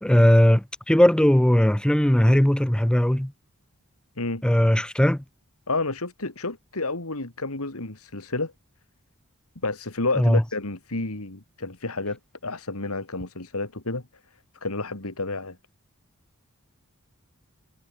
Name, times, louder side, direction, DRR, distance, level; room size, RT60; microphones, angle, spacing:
voice 1, 0.0-3.3 4.4-5.2 10.2-10.4, equal, 5° left, 0.5 m, -18 dB
voice 2, 5.7-8.5 9.6-14.0 14.6-15.6, left 3 dB, 75° left, 2.7 m, -30 dB
head